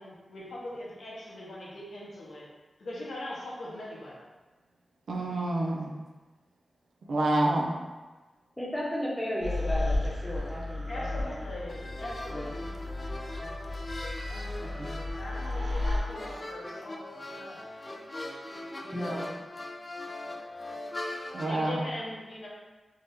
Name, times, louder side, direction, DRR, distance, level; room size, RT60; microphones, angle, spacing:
voice 1, 0.0-2.5 2.8-4.2 10.9-12.8 14.3-17.6 18.8-19.4 21.4-22.5, left 1 dB, 80° left, -5 dB, 0.7 m, -41 dB
voice 2, 5.1-5.9 7.1-7.7 14.8-14.9 21.3-21.8, right 1 dB, 85° right, -1 dB, 0.4 m, -27 dB
voice 3, 8.6-11.3 12.3-12.4 18.9-19.3, equal, 5° left, -5 dB, 0.8 m, -34 dB
sound 1, 9.4-16.0, left 2 dB, 45° right, 0.7 m, -33 dB
sound 2, 11.7-21.6, left 1 dB, 40° left, 0.4 m, -40 dB
2.8 x 2.1 x 3.4 m, 1.2 s
cardioid pair, 60°, 0 cm